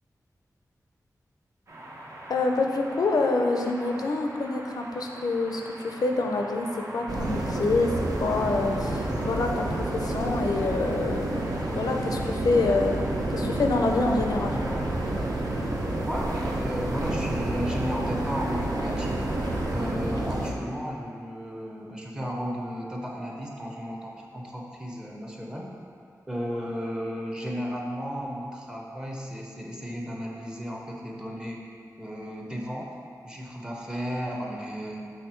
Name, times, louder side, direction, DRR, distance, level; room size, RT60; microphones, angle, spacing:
sound 1, 1.7-19.9, right 1 dB, 50° right, 0.9 m, -42 dB
voice 1, 2.3-14.6, left 3 dB, 75° left, 3 dB, 0.5 m, -27 dB
sound 2, 7.1-20.5, right 1 dB, 75° right, 0.7 m, -29 dB
voice 2, 16.1-19.2 19.7-25.7 26.3-31.6 32.0-32.9 33.2-35.1, equal, 10° right, -2 dB, 0.7 m, -34 dB
6.4 x 3.3 x 4.4 m, 2.3 s
wide cardioid pair, 120°, 7 cm